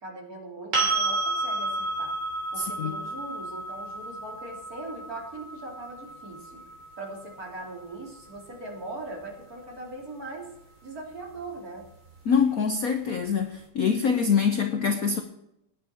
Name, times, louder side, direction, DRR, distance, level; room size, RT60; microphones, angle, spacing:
voice 1, 0.0-2.1 2.5-6.6 7.0-10.5 10.8-11.9, right 2 dB, 40° right, -1 dB, 3.5 m, -40 dB
sound 1, 0.7-8.5 11.4-11.5, right 3 dB, 60° right, 3.9 m, -31 dB
voice 2, 2.6-2.9 12.2-15.2, left 6 dB, 55° left, 6 dB, 1.0 m, -24 dB
17.0 x 10.5 x 4.5 m, 0.82 s
omnidirectional pair, 2.4 m